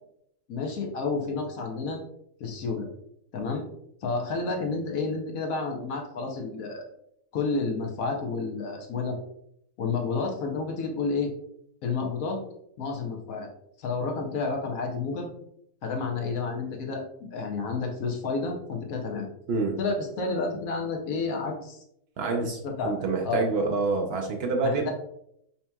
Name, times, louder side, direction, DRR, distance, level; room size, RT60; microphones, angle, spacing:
voice 1, 0.5-2.0 2.4-2.9 3.3-3.6 4.0-6.9 7.3-9.2 9.8-11.3 11.8-12.4 12.8-13.5 13.8-15.3 15.8-19.2 19.8-21.8 22.2-23.0 23.2-23.5 24.6-24.9, left 4 dB, 65° left, 2 dB, 1.1 m, -30 dB
voice 2, 22.2-24.9, right 3 dB, 90° right, 3 dB, 0.5 m, -27 dB
5.6 x 2.8 x 2.2 m, 0.74 s
omnidirectional pair, 1.6 m